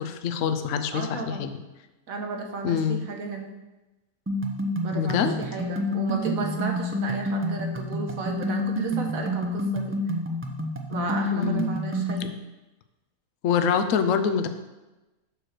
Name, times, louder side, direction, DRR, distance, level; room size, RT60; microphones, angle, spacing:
voice 1, 0.0-1.5 2.6-3.0 5.0-5.3 11.3-11.7 12.2-12.3 13.4-14.5, left 7 dB, 65° left, 8 dB, 1.0 m, -25 dB
voice 2, 0.9-1.4 2.1-3.5 4.8-10.0 10.9-12.2, right 3 dB, 65° right, 3 dB, 1.5 m, -33 dB
sound 1, 4.3-12.3, left 1 dB, 20° right, 0.3 m, -28 dB
6.7 x 4.6 x 6.5 m, 1.1 s
omnidirectional pair, 1.6 m